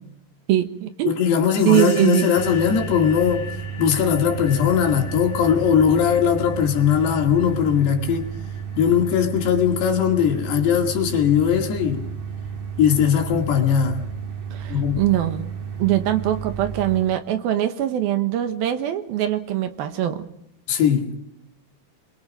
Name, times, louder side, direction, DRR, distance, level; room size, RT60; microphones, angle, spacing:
voice 1, 0.5-1.1 1.6-2.4 14.5-15.4 15.8-20.2, right 12 dB, 70° right, 3.0 m, -22 dB
voice 2, 1.1-3.5 3.8-8.3 8.8-12.1 12.8-14.0 14.7-15.0 20.7-21.1, left 8 dB, 90° left, 4.3 m, -19 dB
sound 1, 1.6-9.9, left 6 dB, 40° left, 4.7 m, -41 dB
sound 2, 2.4-17.0, right 7 dB, 55° right, 2.6 m, -33 dB
27.0 x 23.0 x 5.2 m
omnidirectional pair, 4.6 m